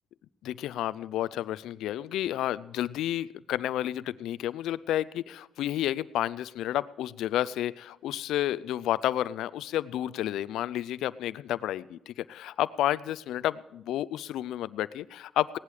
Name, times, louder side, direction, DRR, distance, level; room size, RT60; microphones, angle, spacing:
voice 1, 0.4-15.6, left 13 dB, 85° left, 19 dB, 0.4 m, -31 dB
17.5 x 11.0 x 4.9 m, 0.87 s
cardioid pair, 90°, 0 cm